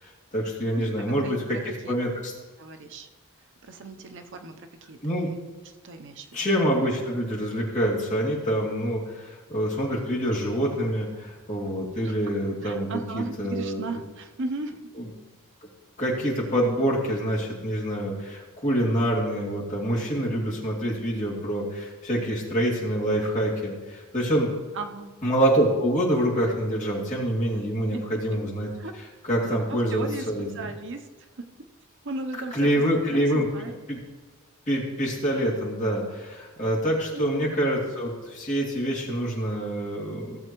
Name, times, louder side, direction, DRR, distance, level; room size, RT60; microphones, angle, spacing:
voice 1, 0.0-2.3 5.0-5.3 6.3-13.8 15.0-15.1 16.0-24.5 25.2-28.7 29.2-30.5 32.5-33.5 33.9-34.0 34.7-40.4, equal, 35° left, -4 dB, 2.6 m, -26 dB
voice 2, 0.8-2.0 2.6-3.1 3.6-5.0 5.8-6.3 12.0-12.2 12.6-14.7 24.7-25.1 27.9-28.0 28.8-28.9 29.4-30.3 30.5-31.1 31.4-31.5 32.0-32.8 33.1-33.7 37.1-37.5, right 3 dB, 55° right, 6 dB, 0.7 m, -36 dB
17.0 x 7.6 x 3.0 m, 1.4 s
head